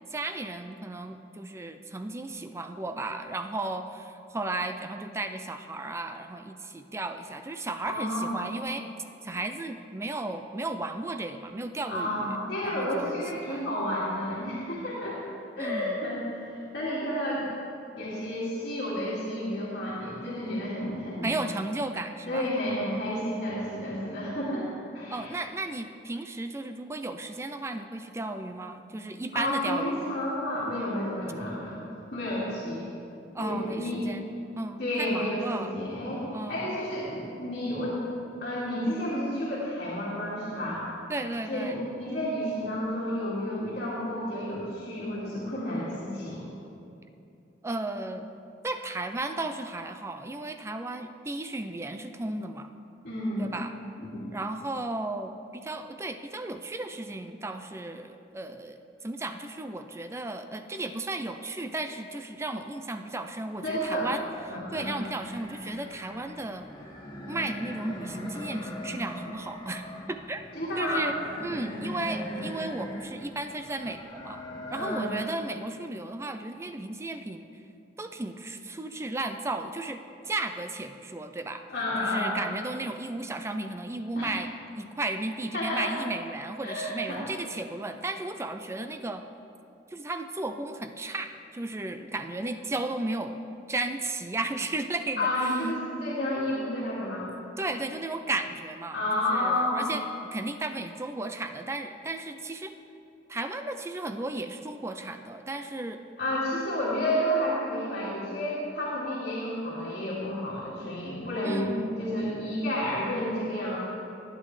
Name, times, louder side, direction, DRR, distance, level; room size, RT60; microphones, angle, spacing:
voice 1, 0.1-8.8 9.2-12.4 12.6-13.1 13.5-13.7 15.6-16.0 21.2-22.5 25.1-30.1 33.3-35.7 36.3-36.8 41.1-41.8 47.6-48.3 48.6-52.7 53.4-53.7 54.3-58.8 59.0-66.7 67.3-69.8 70.1-70.4 70.8-71.1 71.4-74.4 74.7-77.4 78.0-80.0 80.2-81.6 82.0-84.5 84.8-89.2 89.9-93.4 93.7-95.5 97.6-100.0 100.3-102.7 103.3-106.0 111.4-112.0, right 2 dB, 15° right, 7 dB, 0.4 m, -34 dB
voice 2, 7.8-8.3 11.9-17.5 18.0-21.3 22.3-24.7 24.9-25.3 29.3-31.8 32.1-32.9 33.4-34.1 34.8-38.0 38.4-40.8 41.5-46.5 53.0-53.6 54.0-54.3 63.6-64.1 64.5-64.9 70.5-71.1 74.7-75.1 81.7-82.3 84.2-84.3 85.5-85.9 86.6-87.3 95.2-97.3 98.9-99.9 106.2-113.8, left 1 dB, 60° left, -9 dB, 2.3 m, -31 dB
sound 1, 63.6-74.8, left 1 dB, 25° left, 1.4 m, -41 dB
18.5 x 9.1 x 3.2 m, 2.6 s
head